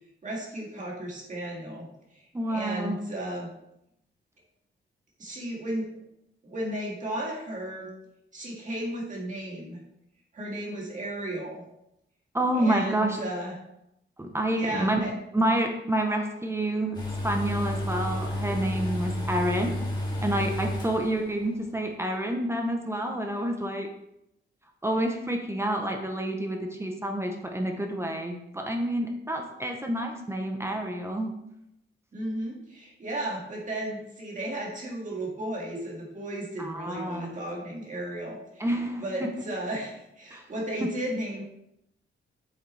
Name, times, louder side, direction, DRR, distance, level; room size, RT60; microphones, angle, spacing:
voice 1, 0.2-3.5 5.2-5.9 6.4-7.9 8.3-9.8 10.3-11.6 12.5-13.6 14.5-15.1 32.1-38.7 39.0-41.4, right 1 dB, 40° right, -3 dB, 1.9 m, -34 dB
voice 2, 2.3-3.0 12.3-13.2 14.2-15.0 15.3-17.0 17.2-19.8 20.2-23.9 24.8-31.3 36.6-37.3 38.6-39.3 40.3-40.4 40.8-40.9, right 1 dB, 10° right, 2 dB, 0.7 m, -28 dB
sound 1, 16.9-21.4 21.7-21.8, left 1 dB, 20° left, 2.0 m, -31 dB
8.4 x 6.5 x 3.3 m, 0.82 s
wide cardioid pair, 175°, 21 cm